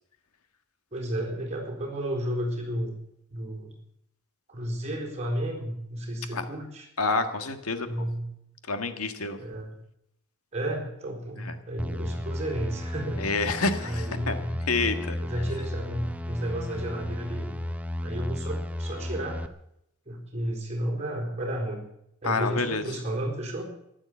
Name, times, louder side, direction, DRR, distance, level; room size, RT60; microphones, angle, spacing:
voice 1, 0.9-2.9 3.3-3.7 4.5-6.9 7.9-8.3 9.4-9.7 10.5-13.2 13.8-14.5 15.2-17.5 18.0-19.5 20.1-21.8 22.2-23.6, right 1 dB, 30° right, 1 dB, 4.2 m, -32 dB
voice 2, 7.0-8.0 8.7-9.4 11.4-11.5 13.2-14.4 14.7-15.2 22.2-22.9, left 3 dB, 90° left, 8 dB, 1.7 m, -28 dB
sound 1, 11.8-19.5, left 1 dB, 5° right, 0.7 m, -34 dB
14.5 x 11.5 x 8.4 m, 0.79 s
head